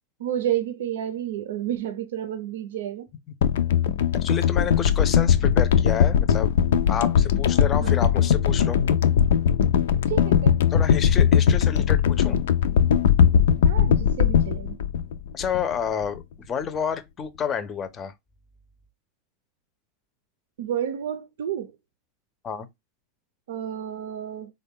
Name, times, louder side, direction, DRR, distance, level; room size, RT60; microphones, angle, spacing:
voice 1, 0.2-3.1 7.8-8.0 10.1-10.6 13.6-14.8 20.6-21.7 23.5-24.5, right 10 dB, 90° right, 0.6 m, -30 dB
sound 1, 3.4-15.7 16.0-16.2, left 8 dB, 90° left, 0.4 m, -20 dB
voice 2, 4.1-6.5 6.9-8.8 10.7-12.4 15.3-18.1 22.4-22.7, left 7 dB, 25° left, 0.5 m, -29 dB
3.8 x 2.2 x 3.6 m
supercardioid pair, 145°, 0 cm